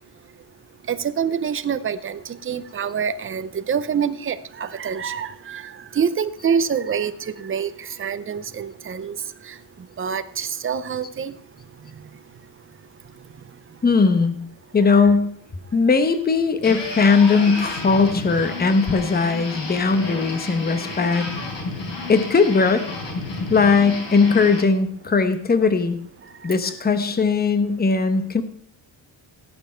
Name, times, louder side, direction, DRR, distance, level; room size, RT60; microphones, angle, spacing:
voice 1, 0.9-7.1 7.4-9.2 10.0-11.3, right 7 dB, 25° right, 12 dB, 0.6 m, -26 dB
voice 2, 13.8-14.3 14.7-15.3 15.7-21.3 22.1-22.8 23.5-26.0 26.4-28.4, left 4 dB, 20° left, 9 dB, 1.0 m, -19 dB
sound 1, 16.6-24.6, left 3 dB, 65° left, 4.4 m, -31 dB
17.5 x 7.1 x 4.4 m, 0.63 s
cardioid pair, 145°, 48 cm